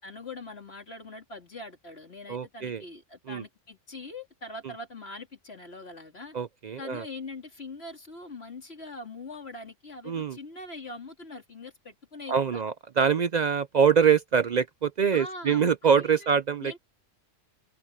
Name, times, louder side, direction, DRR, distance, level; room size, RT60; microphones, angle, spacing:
voice 1, 0.0-6.4 6.8-12.6 15.1-15.7 16.0-16.3 16.6-16.8, left 2 dB, 55° left, 3.1 m, -42 dB
voice 2, 2.3-2.8 3.3-3.4 6.3-7.1 10.1-10.4 12.3-16.7, right 7 dB, 60° right, 0.4 m, -24 dB
open air
omnidirectional pair, 1.3 m